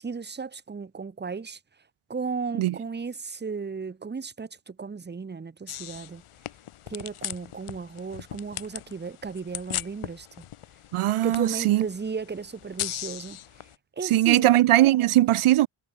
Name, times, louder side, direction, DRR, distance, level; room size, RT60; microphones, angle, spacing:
voice 1, 0.0-1.6 2.1-6.2 6.9-10.4 11.2-13.7 14.0-14.5, right 5 dB, 20° right, 1.2 m, -35 dB
sound 1, 5.7-13.8, left 11 dB, 85° left, 3.2 m, -39 dB
voice 2, 10.9-11.8 14.0-15.7, right 15 dB, 85° right, 0.9 m, -20 dB
cardioid pair, 125°, 49 cm